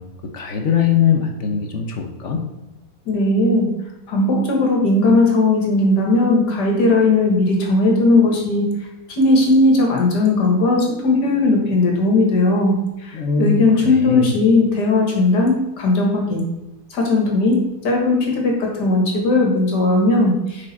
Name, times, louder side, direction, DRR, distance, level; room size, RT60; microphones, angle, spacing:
voice 1, 0.0-2.4 13.1-14.3, left 7 dB, 55° left, 3 dB, 1.0 m, -21 dB
voice 2, 3.1-3.7 4.1-8.8 9.1-16.4 16.9-20.7, left 2 dB, 80° left, 0 dB, 2.2 m, -17 dB
6.5 x 5.0 x 4.2 m, 1.0 s
omnidirectional pair, 1.8 m